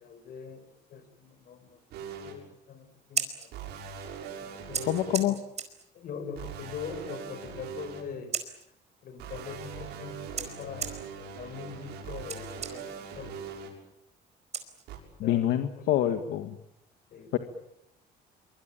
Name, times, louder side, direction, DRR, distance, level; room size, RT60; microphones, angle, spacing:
voice 1, 0.0-3.6 4.4-5.4 5.9-8.6 9.0-13.6 15.2-16.2 17.1-17.4, left 6 dB, 60° left, 11 dB, 5.8 m, -43 dB
sound 1, 1.9-2.3 3.5-5.2 6.4-8.0 9.2-13.7 14.9-15.0, right 6 dB, 85° right, 6.8 m, -41 dB
Scissors, 2.9-15.3, right 7 dB, 40° right, 4.7 m, -41 dB
voice 2, 4.9-5.4 15.2-16.6 17.3-17.4, left 12 dB, 80° left, 8 dB, 1.8 m, -26 dB
24.5 x 24.5 x 9.0 m, 0.80 s
cardioid pair, 110°, 17 cm